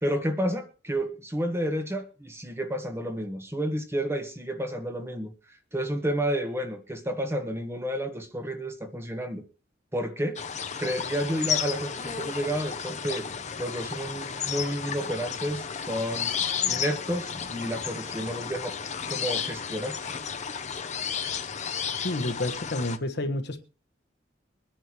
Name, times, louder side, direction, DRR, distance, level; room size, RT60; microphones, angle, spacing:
voice 1, 0.0-5.3 5.7-9.4 9.9-10.4 10.8-13.3 13.6-16.3 16.7-18.8 19.1-20.0, equal, 15° right, 6 dB, 1.3 m, -30 dB
sound 1, 10.4-23.0, left 7 dB, 40° left, 0.8 m, -33 dB
voice 2, 22.0-23.6, left 1 dB, 65° left, 7 dB, 1.3 m, -29 dB
23.0 x 10.0 x 3.0 m, 0.34 s
head